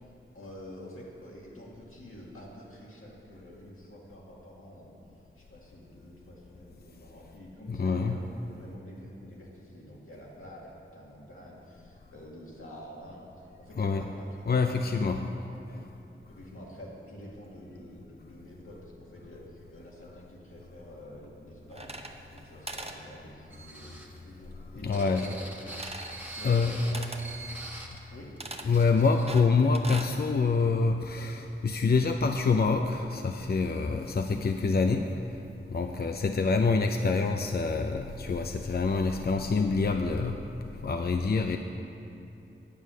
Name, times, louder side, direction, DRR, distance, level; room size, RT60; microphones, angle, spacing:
voice 1, 0.3-4.9 5.3-14.8 15.7-15.9 16.3-25.7 26.3-27.2 28.1-28.3 33.6-33.9 35.7-36.2, equal, 85° left, -5 dB, 2.1 m, -48 dB
voice 2, 7.7-8.2 13.8-14.0 14.5-15.3 24.8-25.2 26.4-26.7 28.7-35.4 35.7-40.4 40.8-41.6, left 4 dB, 50° left, 5 dB, 0.5 m, -26 dB
sound 1, 21.7-22.4 22.7-23.0 25.7-26.2 26.9-27.3 28.4-28.7 29.3-30.1, right 2 dB, 30° right, 0.8 m, -40 dB
sound 2, 23.5-28.0 28.4-28.5 28.7-29.3, right 2 dB, 10° right, 1.3 m, -44 dB
9.3 x 8.0 x 6.2 m, 2.7 s
wide cardioid pair, 50°, 21 cm